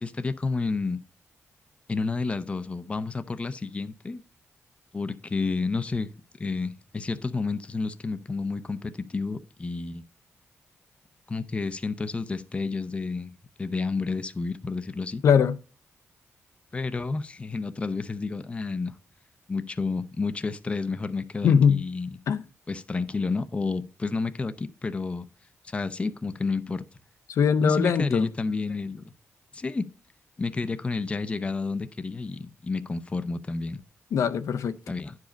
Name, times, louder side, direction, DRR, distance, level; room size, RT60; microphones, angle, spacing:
voice 1, 0.0-1.0 1.9-4.2 4.9-6.1 6.4-10.0 11.3-15.2 16.7-19.0 19.5-22.1 22.7-25.3 25.6-26.8 27.6-29.0 29.5-29.9 30.4-33.8 34.9-35.2, left 3 dB, 25° left, 0.5 m, -30 dB
voice 2, 15.2-15.6 21.4-21.8 22.3-22.4 27.3-28.3 34.1-34.8, left 7 dB, 80° left, 0.6 m, -21 dB
10.5 x 4.9 x 5.1 m
wide cardioid pair, 135°, 5 cm